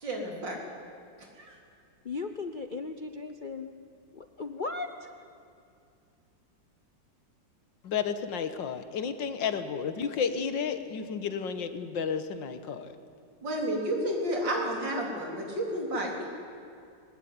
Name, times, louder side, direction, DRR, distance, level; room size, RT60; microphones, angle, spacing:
voice 1, 0.0-0.7 13.4-16.2, right 1 dB, 80° right, 0 dB, 4.4 m, -31 dB
voice 2, 2.0-3.7 4.1-5.1, left 4 dB, 50° left, 7 dB, 0.6 m, -36 dB
voice 3, 7.8-12.9, left 6 dB, 80° left, 10 dB, 2.0 m, -32 dB
21.0 x 19.5 x 9.6 m, 2.5 s
omnidirectional pair, 2.0 m